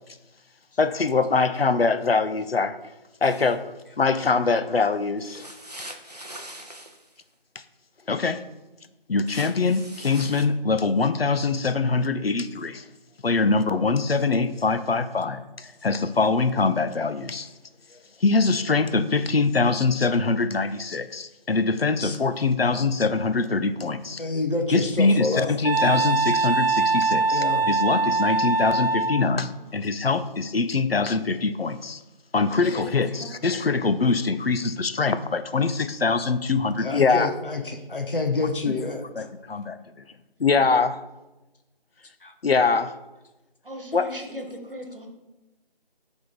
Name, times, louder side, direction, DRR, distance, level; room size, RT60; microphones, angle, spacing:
voice 1, 0.8-2.8 3.2-3.6 4.0-5.5 8.1-8.4 9.1-12.8 13.2-17.5 18.2-24.2 24.7-32.0 32.3-37.3 39.2-39.8 40.4-41.0 42.4-42.9 43.9-44.1, left 4 dB, 90° left, 11 dB, 0.6 m, -23 dB
sound 1, 3.2-3.6 5.2-7.1 9.3-10.4, right 1 dB, 45° right, 0.6 m, -42 dB
voice 2, 14.7-15.2 29.5-30.1 32.4-33.5 40.4-40.6 43.6-45.1, equal, 65° right, 3 dB, 1.4 m, -41 dB
voice 3, 24.2-25.6 27.3-27.7 36.8-39.3 42.2-42.3, left 3 dB, 65° left, 5 dB, 0.9 m, -28 dB
Wind instrument woodwind instrument, 25.6-29.3, right 3 dB, 85° right, 0.5 m, -23 dB
7.8 x 3.6 x 4.0 m, 1.0 s
figure-of-eight pair, 175°, 29 cm